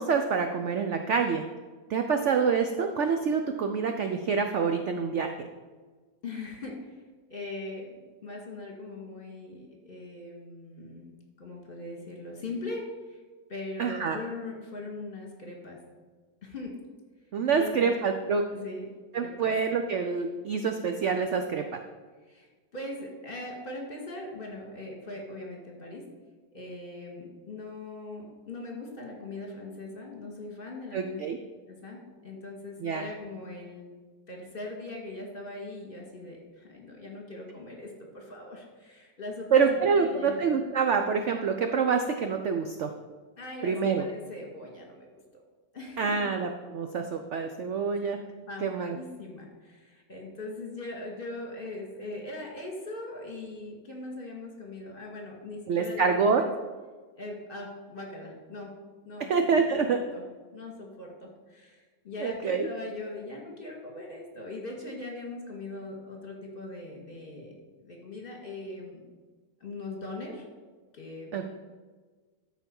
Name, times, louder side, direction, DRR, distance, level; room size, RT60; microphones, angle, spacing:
voice 1, 0.0-1.4 1.9-5.3 13.8-14.2 17.3-18.4 19.1-21.8 30.9-31.4 32.8-33.0 39.5-42.9 43.6-44.1 46.0-48.2 48.6-49.0 55.7-56.4 59.3-60.0 62.2-62.7 71.3-71.4, right 5 dB, 70° right, 5 dB, 0.7 m, -26 dB
voice 2, 6.2-7.0 7.3-13.2 13.5-15.8 16.4-16.7 17.5-18.0 18.5-18.8 19.1-19.5 22.3-22.5 22.7-26.0 26.5-31.2 31.7-33.9 34.3-40.4 43.4-45.1 45.7-46.3 48.0-48.1 48.5-56.4 57.2-58.7 59.0-60.2 60.5-67.5 67.8-69.1 69.6-70.5 70.9-71.3, left 2 dB, 30° left, -1 dB, 2.1 m, -40 dB
13.5 x 4.6 x 5.4 m, 1.4 s
omnidirectional pair, 1.9 m